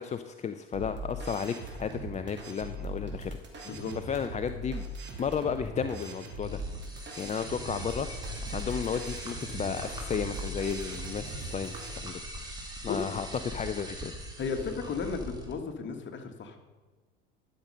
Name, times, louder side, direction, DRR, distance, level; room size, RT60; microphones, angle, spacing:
voice 1, 0.0-3.4 4.1-4.8 5.2-6.6 7.2-8.1 8.5-12.2 12.8-14.1, left 7 dB, 25° left, 9 dB, 0.5 m, -33 dB
sound 1, 0.7-12.0, right 1 dB, 35° right, 2.8 m, -40 dB
sound 2, 6.4-15.5, equal, 15° right, 2.4 m, -41 dB
voice 2, 14.4-16.6, left 5 dB, 40° left, 5 dB, 1.7 m, -34 dB
12.5 x 6.6 x 5.5 m, 1.3 s
hypercardioid pair, 70°, 30 cm